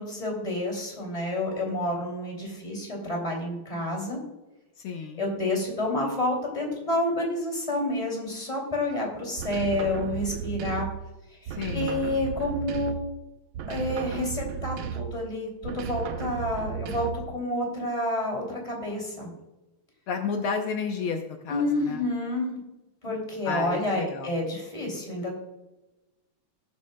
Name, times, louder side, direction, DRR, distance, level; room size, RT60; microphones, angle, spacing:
voice 1, 0.0-4.2 5.2-10.9 11.4-13.0 13.7-17.1 17.3-19.3 21.5-22.6 23.0-25.4, left 1 dB, 15° left, 0 dB, 2.8 m, -29 dB
voice 2, 4.8-5.2 11.5-12.0 20.1-22.0 23.5-24.3, left 5 dB, 75° left, 4 dB, 1.7 m, -31 dB
sound 1, 9.4-11.1 11.5-13.2 13.5-15.3 15.6-17.4, right 8 dB, 75° right, 1.4 m, -34 dB
18.5 x 7.5 x 2.3 m, 1.0 s
omnidirectional pair, 2.4 m